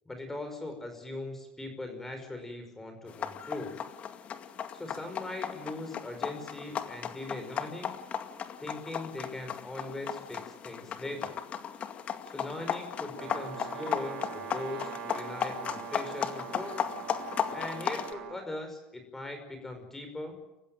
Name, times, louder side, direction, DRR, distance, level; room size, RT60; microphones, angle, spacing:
voice 1, 0.1-3.8 4.7-8.0 8.6-11.4 12.3-16.8 17.5-20.4, left 2 dB, 10° left, 6 dB, 5.4 m, -40 dB
sound 1, 3.1-18.1, left 8 dB, 40° left, 2.2 m, -36 dB
Brass instrument, 13.2-18.4, right 7 dB, 55° right, 4.6 m, -42 dB
28.5 x 15.5 x 9.0 m, 0.95 s
supercardioid pair, 115°, 3 cm